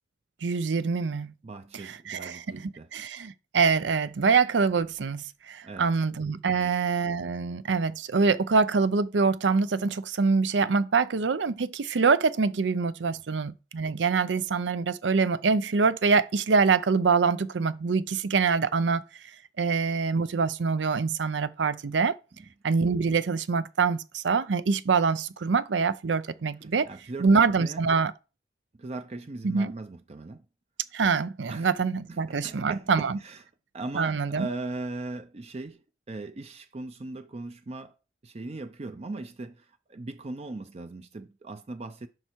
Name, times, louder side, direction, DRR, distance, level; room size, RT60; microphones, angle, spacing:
voice 1, 0.4-1.3 1.8-2.6 2.9-19.0 19.6-22.2 22.6-26.9 27.2-28.1 29.4-29.7 30.9-33.2 33.9-34.5, right 5 dB, 85° right, 0.6 m, -25 dB
voice 2, 1.4-2.9 5.6-5.9 6.5-6.7 22.4-22.5 26.6-27.9 28.8-30.4 31.5-31.7 32.1-33.4 33.7-37.9 38.2-42.1, right 2 dB, 35° right, 0.5 m, -39 dB
7.7 x 5.6 x 4.5 m
head